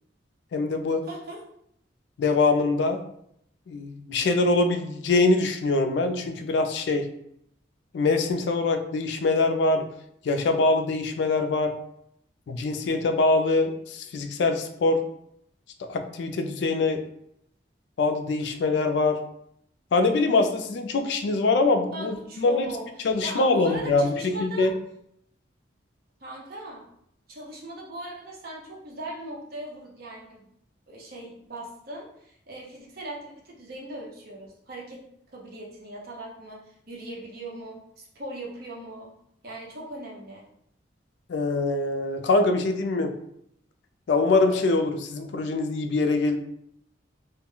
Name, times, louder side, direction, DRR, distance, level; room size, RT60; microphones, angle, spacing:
voice 1, 0.5-1.0 2.2-3.0 3.7-7.1 7.9-9.8 10.2-11.7 12.5-15.0 15.9-17.0 18.0-19.2 19.9-22.7 23.0-24.7 41.3-43.1 44.1-46.4, left 3 dB, 70° left, 6 dB, 0.3 m, -23 dB
voice 2, 1.0-1.4 21.9-24.7 26.2-26.9 27.3-30.4 30.9-35.0 35.3-39.1 39.4-40.5, right 1 dB, 55° right, -2 dB, 0.7 m, -39 dB
2.2 x 2.0 x 3.6 m, 0.73 s
head